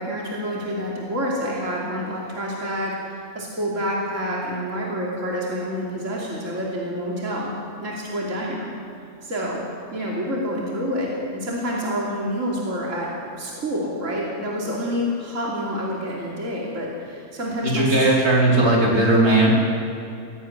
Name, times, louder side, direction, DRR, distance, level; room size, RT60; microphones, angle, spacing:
voice 1, 0.0-7.5 7.8-8.7 9.2-9.6 9.9-18.1, equal, 55° right, -4 dB, 3.3 m, -28 dB
voice 2, 17.6-19.5, right 2 dB, 80° right, -4 dB, 4.8 m, -17 dB
16.5 x 16.5 x 9.5 m, 2.6 s
omnidirectional pair, 1.5 m